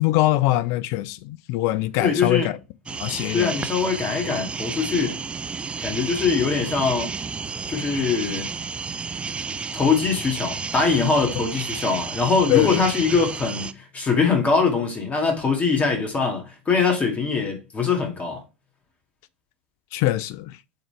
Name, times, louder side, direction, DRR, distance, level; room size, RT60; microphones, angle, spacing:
voice 1, 0.0-2.5 3.0-3.6 12.5-12.8 19.9-20.6, left 16 dB, 50° left, 0.5 m, -22 dB
voice 2, 2.0-2.5 3.3-5.2 5.8-7.2 7.7-8.5 9.7-18.4, left 5 dB, 20° left, 2.2 m, -22 dB
sound 1, 2.9-13.7, right 5 dB, 15° right, 0.5 m, -32 dB
7.8 x 4.0 x 3.3 m
figure-of-eight pair, 85°, 6 cm